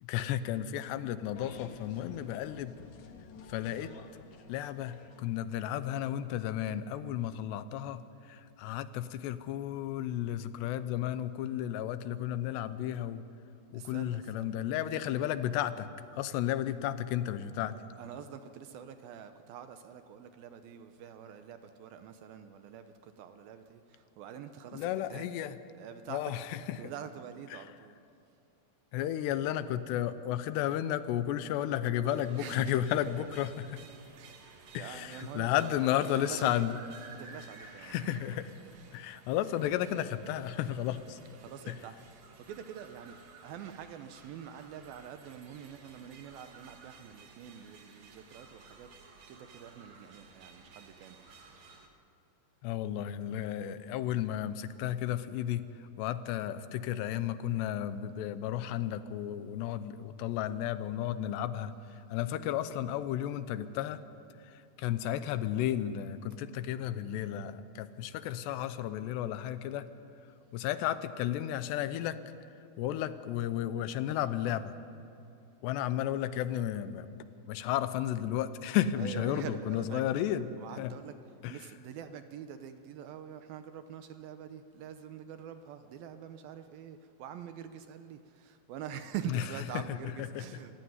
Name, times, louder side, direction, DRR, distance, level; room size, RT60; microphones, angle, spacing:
voice 1, 0.0-2.7 3.5-3.9 4.5-13.2 13.7-15.9 16.1-17.7 24.7-25.6 26.1-26.8 27.5-27.6 28.9-33.8 34.7-36.8 37.8-38.5 38.9-41.2 41.7-41.8 52.6-55.7 56.0-61.7 62.1-64.0 64.5-69.9 70.5-72.2 72.8-74.8 75.6-77.1 77.5-80.5 80.8-80.9 81.4-81.7 89.3-89.4 89.7-89.8 90.4-90.5, left 11 dB, 85° left, 12 dB, 3.0 m, -33 dB
sound 1, 1.3-5.8, left 5 dB, 60° left, 2.1 m, -51 dB
voice 2, 13.7-14.6 18.0-25.3 25.8-26.3 26.8-27.9 32.4-33.3 34.2-35.7 36.1-36.7 37.2-38.2 41.3-43.2 43.4-48.9 49.3-51.2 79.0-80.0 80.6-81.2 81.5-90.7, right 9 dB, 75° right, 9 dB, 2.4 m, -45 dB
sound 2, 32.1-51.9, right 4 dB, 50° right, 2.5 m, -55 dB
26.5 x 15.5 x 9.5 m, 2.6 s
omnidirectional pair, 4.8 m